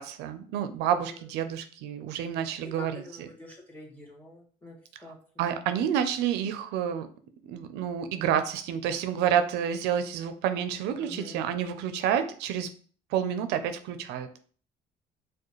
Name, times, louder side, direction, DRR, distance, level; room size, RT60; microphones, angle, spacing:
voice 1, 0.0-3.0 5.4-7.1 7.4-12.7 13.1-14.3, right 9 dB, 90° right, 9 dB, 0.4 m, -29 dB
voice 2, 0.9-1.3 2.6-5.4 10.9-11.8, left 2 dB, 10° left, 0 dB, 1.4 m, -46 dB
4.8 x 2.2 x 3.0 m, 0.43 s
cardioid pair, 110°, 17 cm